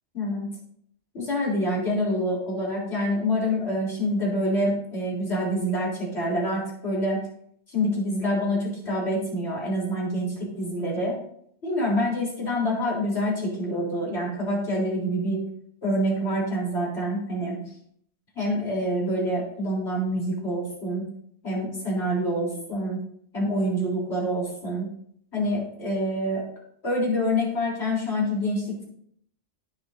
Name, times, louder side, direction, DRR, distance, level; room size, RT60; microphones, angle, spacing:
voice 1, 0.1-0.5 1.1-7.2 7.7-11.2 11.6-15.4 15.8-17.6 18.3-21.0 21.4-23.0 23.3-24.9 25.3-26.4 26.8-28.8, equal, 70° left, -4 dB, 4.0 m, -26 dB
16.5 x 7.2 x 2.7 m, 0.68 s
omnidirectional pair, 1.2 m